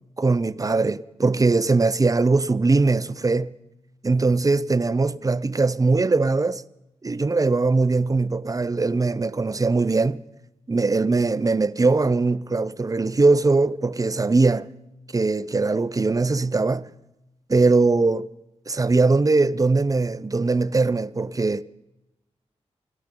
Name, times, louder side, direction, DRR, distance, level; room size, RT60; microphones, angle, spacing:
voice 1, 0.2-3.5 4.0-6.6 7.0-10.2 10.7-14.7 15.1-16.9 17.5-18.3 18.7-21.6, right 3 dB, 30° right, 0.6 m, -21 dB
24.5 x 13.5 x 3.8 m
cardioid pair, 60°, 12 cm